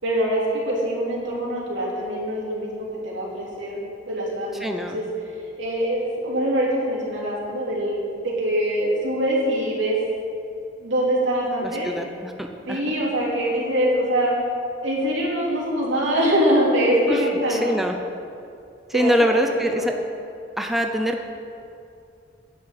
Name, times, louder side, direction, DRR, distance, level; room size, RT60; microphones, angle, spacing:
voice 1, 0.0-3.8 4.1-5.0 5.6-10.0 10.8-11.9 12.7-14.3 14.8-17.8 18.9-19.9, equal, 80° right, -4 dB, 3.1 m, -23 dB
voice 2, 4.6-5.0 11.6-12.8 17.1-17.2 17.5-17.9 18.9-19.9 20.6-21.2, equal, ahead, 3 dB, 0.6 m, -24 dB
10.0 x 6.2 x 8.8 m, 2.6 s
head